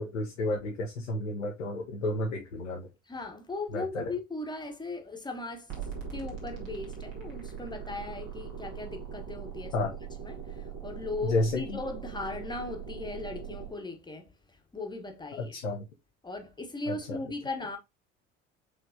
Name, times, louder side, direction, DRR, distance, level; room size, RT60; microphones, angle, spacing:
voice 1, 0.0-2.9 3.7-4.0 9.7-9.9 11.2-11.8 15.4-15.8 16.9-17.2, left 2 dB, 80° left, 0.8 m, -31 dB
voice 2, 3.1-5.7 6.1-9.9 10.2-14.3 14.7-15.6 16.2-17.8, left 3 dB, 10° left, 1.0 m, -38 dB
sound 1, 5.7-13.7, right 7 dB, 60° right, 1.7 m, -41 dB
4.7 x 3.2 x 2.6 m
figure-of-eight pair, 60°, 37 cm